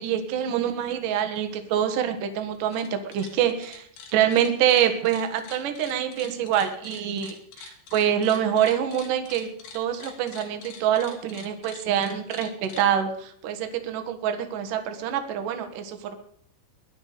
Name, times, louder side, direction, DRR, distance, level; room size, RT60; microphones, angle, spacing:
voice 1, 0.0-3.9 4.1-9.5 9.7-16.1, right 9 dB, 60° right, 7 dB, 2.5 m, -25 dB
sound 1, 2.6-2.9 3.1-12.9, left 6 dB, 60° left, 3.9 m, -45 dB
20.5 x 12.0 x 5.1 m, 0.66 s
omnidirectional pair, 5.5 m